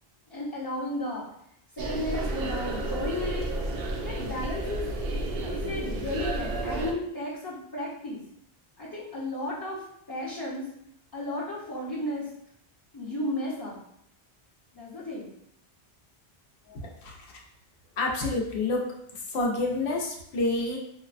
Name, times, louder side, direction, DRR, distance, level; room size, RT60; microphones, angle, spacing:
voice 1, 0.3-1.2 1.8-3.5 4.0-4.8 5.4-8.2 8.8-10.7 11.1-12.3 12.9-13.8 14.7-15.3, left 1 dB, 25° left, -8 dB, 0.6 m, -34 dB
sound 1, 1.8-6.9, right 2 dB, 65° right, 0.7 m, -31 dB
voice 2, 16.7-17.3 18.0-18.8 19.1-20.8, left 2 dB, 75° left, -1 dB, 0.9 m, -28 dB
4.6 x 2.0 x 2.4 m, 0.74 s
omnidirectional pair, 1.1 m